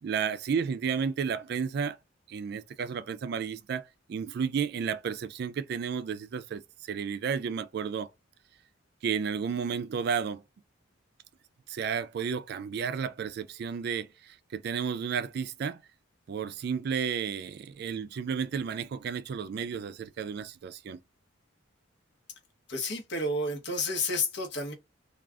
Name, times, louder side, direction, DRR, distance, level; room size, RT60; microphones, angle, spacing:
voice 1, 0.0-2.0 2.3-3.8 4.1-8.1 9.0-10.4 11.7-15.8 16.3-21.0, right 6 dB, 55° right, 0.3 m, -32 dB
voice 2, 22.7-24.7, left 2 dB, 60° left, 0.9 m, -30 dB
2.4 x 2.4 x 3.3 m
head